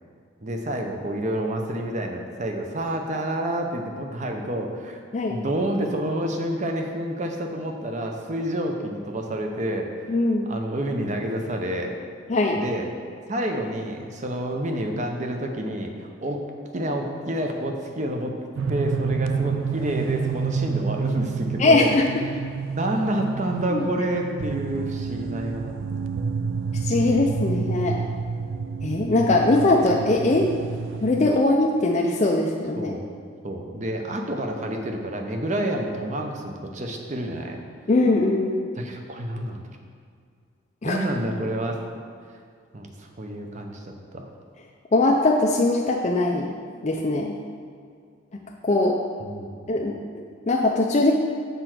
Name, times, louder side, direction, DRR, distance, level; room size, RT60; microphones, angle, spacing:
voice 1, 0.4-5.0 5.3-11.9 12.5-12.9 13.3-16.4 16.7-18.3 18.7-22.0 22.7-25.7 32.8-33.1 33.4-37.6 38.7-39.6 40.8-41.8 42.7-44.3 49.2-49.7, right 1 dB, 35° right, 3 dB, 0.7 m, -29 dB
voice 2, 10.1-10.5 12.3-12.6 21.6-22.2 23.7-23.9 26.8-28.0 28.8-30.5 31.0-33.0 37.9-38.7 40.8-41.0 44.9-46.5 46.8-47.4 48.6-49.0 49.7-51.1, left 2 dB, 35° left, -1 dB, 0.4 m, -21 dB
sound 1, 18.6-31.4, right 5 dB, 65° right, 0.4 m, -29 dB
6.9 x 4.5 x 6.0 m, 2.2 s
head